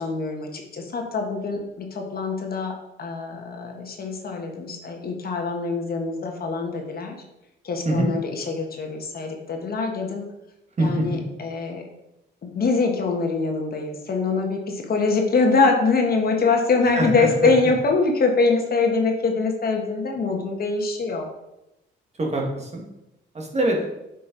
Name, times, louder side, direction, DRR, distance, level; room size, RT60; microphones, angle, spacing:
voice 1, 0.0-7.2 7.6-10.3 10.8-11.9 12.4-21.3, left 4 dB, 50° left, 2 dB, 1.5 m, -24 dB
voice 2, 17.0-17.3 22.2-22.8 23.3-23.9, right 1 dB, 35° right, 0 dB, 1.9 m, -23 dB
8.5 x 5.5 x 4.0 m, 0.91 s
cardioid pair, 90°, 20 cm